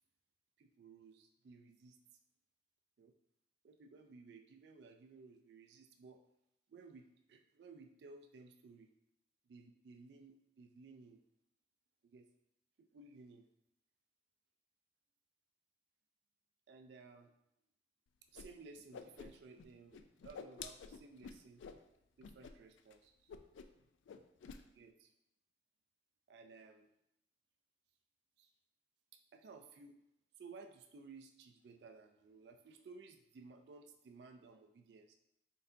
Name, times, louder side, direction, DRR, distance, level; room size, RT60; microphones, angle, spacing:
voice 1, 0.6-2.2 3.0-3.1 3.6-6.2 6.7-8.9 9.5-11.2 12.0-12.3 12.8-13.5 16.7-17.3 18.3-21.6 22.2-23.3 24.7-25.1 26.3-26.9 28.4-28.5 29.1-30.0 30.4-35.1, right 4 dB, 65° right, 5 dB, 0.3 m, -57 dB
Whoosh swoosh swish, 18.3-18.5 18.7-19.7 19.9-21.8 22.2-22.5 22.8-22.9 23.3-23.8 24.1-24.6, left 6 dB, 85° left, 0.3 m, -50 dB
4.2 x 4.0 x 2.6 m, 0.83 s
head